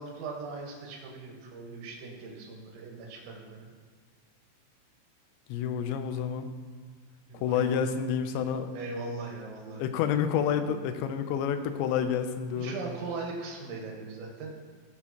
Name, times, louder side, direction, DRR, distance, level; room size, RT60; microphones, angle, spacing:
voice 1, 0.0-3.7 7.3-7.8 8.7-9.8 10.3-10.9 12.5-14.5, right 3 dB, 90° right, 0 dB, 3.7 m, -40 dB
voice 2, 5.5-6.5 7.3-8.7 9.8-12.7, left 8 dB, 80° left, 8 dB, 2.8 m, -29 dB
16.5 x 6.4 x 2.9 m, 1.5 s
omnidirectional pair, 5.2 m